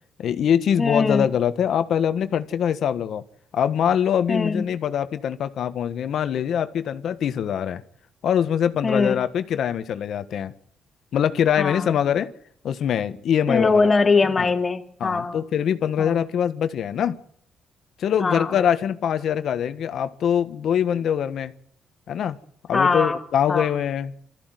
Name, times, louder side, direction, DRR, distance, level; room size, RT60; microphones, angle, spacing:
voice 1, 0.2-3.2 3.5-7.8 8.2-10.5 11.1-12.3 12.6-13.9 14.4-14.5 15.0-17.2 18.0-21.5 22.1-22.4 22.7-24.1, left 9 dB, 70° left, 10 dB, 1.5 m, -23 dB
voice 2, 0.8-1.3 4.3-4.6 8.8-9.2 11.6-11.9 13.5-15.4 16.0-16.1 18.2-18.5 22.7-23.2 23.5-23.7, left 4 dB, 30° left, 4 dB, 3.2 m, -21 dB
24.0 x 14.5 x 9.4 m, 0.65 s
cardioid pair, 90°, 0 cm